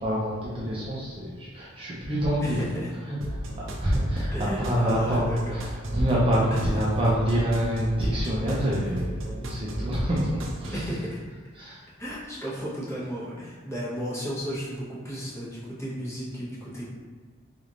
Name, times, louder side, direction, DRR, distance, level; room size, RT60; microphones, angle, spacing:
voice 1, 0.0-2.6 3.0-3.4 3.7-11.0 11.5-11.8, equal, 25° right, -7 dB, 0.6 m, -26 dB
voice 2, 2.4-2.9 4.3-5.6 6.5-6.6 10.7-11.2 12.0-16.8, equal, 15° left, -8 dB, 1.0 m, -34 dB
sound 1, 3.2-10.9, right 1 dB, 75° right, 0.5 m, -35 dB
4.1 x 3.4 x 2.5 m, 1.5 s
head